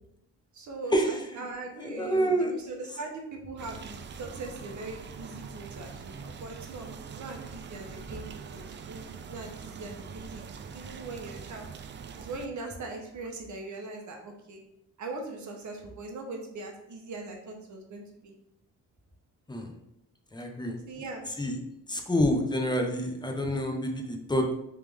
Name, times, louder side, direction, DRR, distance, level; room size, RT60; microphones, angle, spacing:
voice 1, 0.5-6.9 7.1-10.4 10.7-11.7 12.2-14.6 15.0-18.3 20.9-21.2, right 3 dB, 60° right, 2 dB, 1.0 m, -40 dB
voice 2, 1.8-2.5 19.5-19.7 20.3-21.0 21.4-21.6 21.9-24.5, equal, 15° left, 3 dB, 0.7 m, -28 dB
sound 1, 3.6-12.5, right 6 dB, 35° right, 0.4 m, -43 dB
3.5 x 3.1 x 3.5 m, 0.81 s
cardioid pair, 85°, 34 cm